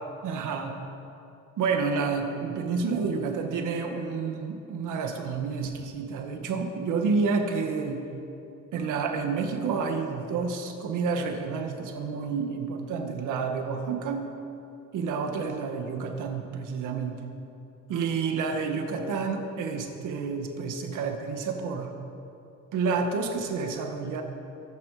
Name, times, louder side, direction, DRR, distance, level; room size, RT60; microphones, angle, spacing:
voice 1, 0.2-0.8 1.6-8.1 8.7-14.3 14.9-17.2 17.9-21.9 22.7-24.2, right 5 dB, 85° right, 4 dB, 1.8 m, -29 dB
23.0 x 10.5 x 5.1 m, 2.8 s
cardioid pair, 90°, 30 cm